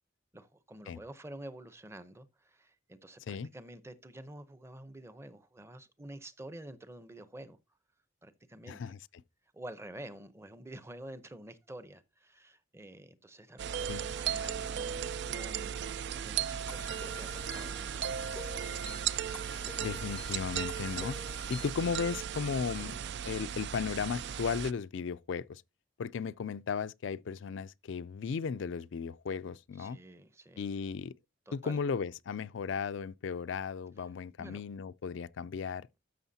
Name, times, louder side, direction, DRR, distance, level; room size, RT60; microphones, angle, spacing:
voice 1, 0.3-7.6 8.2-9.0 9.5-18.1 21.3-21.7 22.8-23.1 29.8-30.6 31.5-31.8 34.4-34.6, right 1 dB, 15° right, 0.7 m, -49 dB
voice 2, 8.7-9.0 13.9-14.0 19.8-21.2 21.5-22.9 23.2-25.6 26.0-30.0 30.6-31.1 31.5-35.9, left 6 dB, 65° left, 0.4 m, -35 dB
sound 1, 13.6-24.7, right 9 dB, 60° right, 0.4 m, -36 dB
sound 2, 16.7-22.0, left 1 dB, 5° left, 0.4 m, -47 dB
13.0 x 6.3 x 2.8 m
head